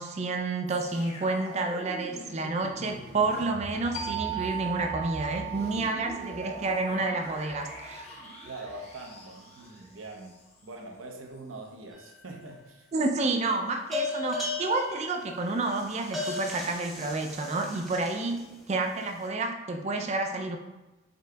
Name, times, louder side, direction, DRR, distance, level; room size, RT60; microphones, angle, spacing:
voice 1, 0.0-8.1 12.9-20.6, right 3 dB, 35° right, 4 dB, 0.4 m, -30 dB
sound 1, 0.7-10.7 11.3-11.4, left 1 dB, 30° left, 0.7 m, -44 dB
sound 2, 3.9-9.2, right 11 dB, 75° left, 0.7 m, -39 dB
voice 2, 8.5-10.4 10.6-12.9, right 2 dB, 75° right, 2 dB, 0.7 m, -43 dB
sound 3, 11.9-12.5 13.9-18.4, left 3 dB, ahead, 0.7 m, -36 dB
5.2 x 3.7 x 2.2 m, 1.1 s
head